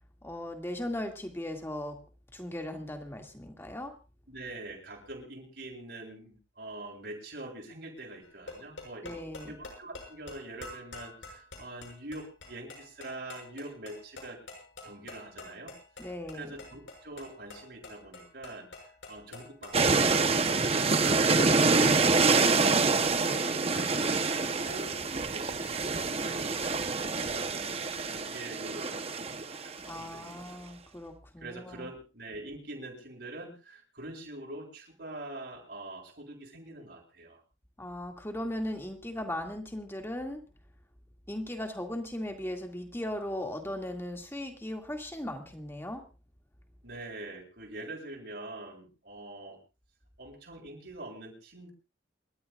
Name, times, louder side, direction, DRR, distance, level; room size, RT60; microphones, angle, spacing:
voice 1, 0.2-2.0 2.3-3.9 9.0-9.5 16.0-16.5 29.8-31.9 37.8-40.4 41.3-46.0, left 1 dB, 10° left, 3 dB, 2.2 m, -37 dB
voice 2, 4.3-9.2 9.5-14.4 14.8-15.8 16.3-18.7 19.1-20.7 21.1-23.3 23.7-24.9 25.3-30.4 31.4-37.4 46.8-49.6 50.2-51.7, right 2 dB, 60° right, -1 dB, 7.3 m, -44 dB
sound 1, 8.2-20.2, left 2 dB, 80° left, 6.7 m, -47 dB
sound 2, 19.7-30.0, right 4 dB, 30° right, 0.9 m, -26 dB
29.0 x 13.5 x 2.5 m, 0.33 s
head